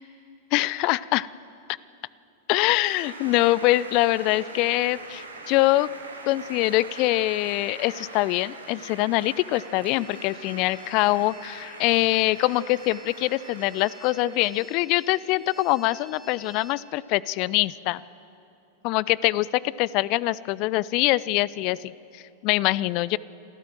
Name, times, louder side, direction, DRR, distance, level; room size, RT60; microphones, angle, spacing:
voice 1, 0.5-1.3 2.5-5.9 6.3-18.0 18.8-23.2, left 18 dB, 45° left, 21 dB, 0.5 m, -24 dB
sound 1, 2.7-14.8, right 3 dB, 75° right, 2.4 m, -43 dB
sound 2, 9.6-16.8, equal, ahead, 1.8 m, -51 dB
28.0 x 14.0 x 7.7 m, 2.8 s
figure-of-eight pair, 90°, 0 cm